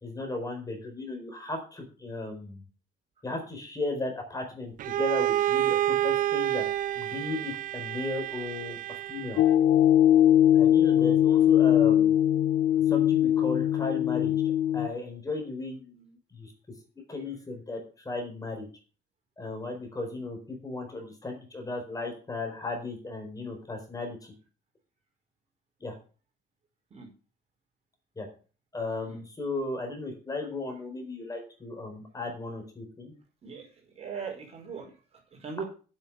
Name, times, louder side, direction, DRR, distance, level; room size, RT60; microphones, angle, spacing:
voice 1, 0.0-2.6 3.2-6.6 6.9-9.4 10.5-12.1 12.9-14.3 14.7-16.5 17.1-18.7 19.4-24.3 25.8-26.0 28.2-28.3 28.7-33.1, left 2 dB, 20° left, 3 dB, 4.4 m, -35 dB
Bowed string instrument, 4.8-9.6, right 12 dB, 55° right, 0.4 m, -29 dB
sound 1, 9.4-14.9, left 11 dB, 80° left, 0.7 m, -21 dB
voice 2, 34.0-34.9 35.3-35.6, right 5 dB, 35° right, 0 dB, 5.2 m, -39 dB
8.7 x 7.4 x 7.0 m, 0.36 s
cardioid pair, 110°, 17 cm